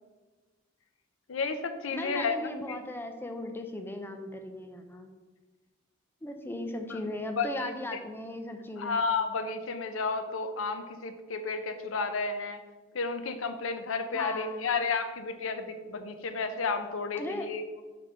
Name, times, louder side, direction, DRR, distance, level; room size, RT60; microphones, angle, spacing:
voice 1, 1.3-2.3 2.7-2.8 6.9-7.0 7.4-8.0 8.8-12.6 12.9-17.8, left 4 dB, 75° left, 8 dB, 0.6 m, -32 dB
voice 2, 1.9-5.1 6.2-9.0 14.1-14.7 17.1-17.5, left 1 dB, 10° left, 6 dB, 0.5 m, -37 dB
5.8 x 3.3 x 5.3 m, 1.3 s
head